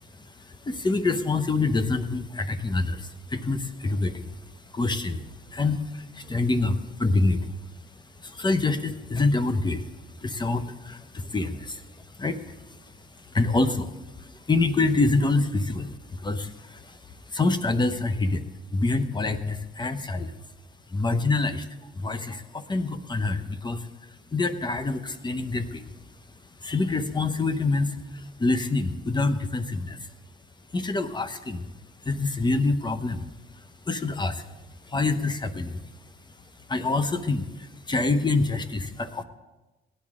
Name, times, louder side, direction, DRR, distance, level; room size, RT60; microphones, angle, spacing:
voice 1, 0.2-4.3 4.7-7.6 8.2-9.9 10.2-11.9 12.2-12.8 13.2-13.9 14.2-18.4 18.7-20.3 20.9-21.7 21.9-23.9 24.3-25.8 26.6-30.0 30.7-31.7 32.0-33.2 33.9-34.5 34.9-35.8 36.7-39.2, left 3 dB, 20° left, 10 dB, 0.9 m, -26 dB
17.5 x 10.5 x 3.7 m, 1.1 s
cardioid pair, 90°, 20 cm